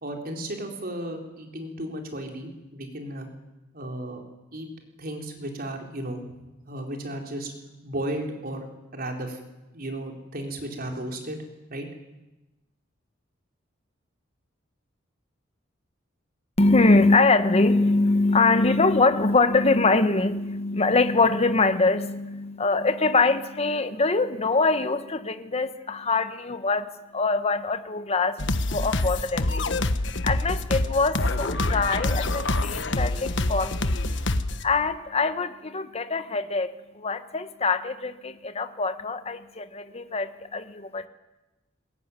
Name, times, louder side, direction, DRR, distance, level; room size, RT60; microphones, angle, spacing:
voice 1, 0.0-3.3 3.7-4.2 4.5-4.7 5.0-6.2 6.6-7.5 7.8-9.4 9.7-11.4 11.7-11.9, right 1 dB, 50° right, 3 dB, 4.4 m, -34 dB
voice 2, 16.6-29.8 30.2-33.9 34.6-41.1, left 3 dB, 30° left, 10 dB, 1.2 m, -23 dB
sound 1, 28.4-34.6, left 2 dB, 65° left, 1.3 m, -26 dB
21.5 x 21.0 x 9.9 m, 1.0 s
head